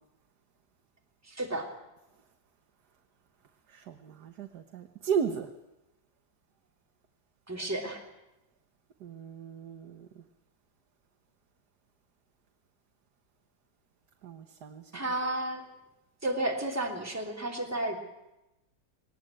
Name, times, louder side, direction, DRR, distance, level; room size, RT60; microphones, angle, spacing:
voice 1, 1.3-1.7 7.5-8.0 14.9-15.6 16.2-18.0, right 1 dB, 10° right, 1 dB, 3.1 m, -32 dB
voice 2, 3.7-5.5 9.0-10.2 14.2-14.9, right 7 dB, 70° right, 6 dB, 1.7 m, -35 dB
21.0 x 19.0 x 9.1 m, 0.94 s
omnidirectional pair, 1.8 m